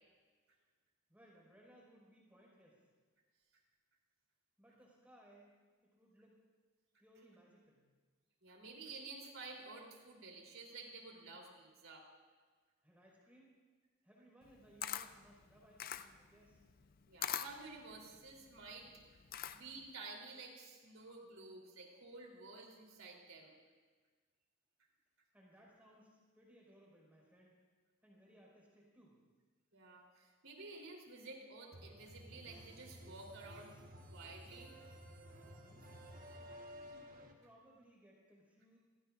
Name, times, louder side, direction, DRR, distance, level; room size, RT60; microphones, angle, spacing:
voice 1, 1.1-2.9 4.6-6.4 7.0-7.8 12.8-13.6 14.0-16.7 25.3-27.5 28.0-29.2 35.4-36.1 36.5-38.8, equal, 10° right, -4 dB, 5.2 m, -64 dB
voice 2, 8.4-12.1 17.1-18.9 19.5-23.5 29.7-33.7 34.1-34.8, right 3 dB, 90° right, 0 dB, 3.6 m, -52 dB
Camera, 14.4-19.9, left 9 dB, 45° left, 0.5 m, -44 dB
sound 1, 31.7-37.3, equal, 45° right, 1.4 m, -54 dB
28.0 x 16.5 x 2.6 m, 1.5 s
head